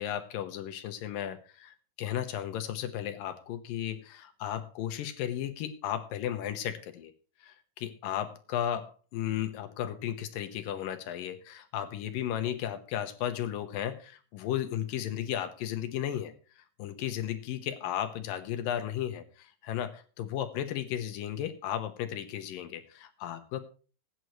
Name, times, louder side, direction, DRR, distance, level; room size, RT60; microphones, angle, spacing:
voice 1, 0.0-7.1 7.4-23.6, left 10 dB, 70° left, 8 dB, 2.2 m, -35 dB
20.5 x 9.3 x 3.2 m, 0.38 s
omnidirectional pair, 5.0 m